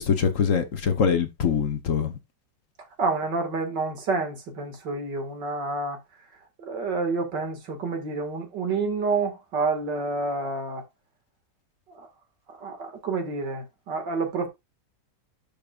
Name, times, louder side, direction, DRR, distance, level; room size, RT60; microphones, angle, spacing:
voice 1, 0.0-2.2, left 6 dB, 50° left, 1.3 m, -23 dB
voice 2, 3.0-6.0 6.6-10.8 11.9-12.1 12.5-14.5, right 3 dB, 90° right, 2.7 m, -28 dB
12.0 x 5.3 x 2.4 m
omnidirectional pair, 1.8 m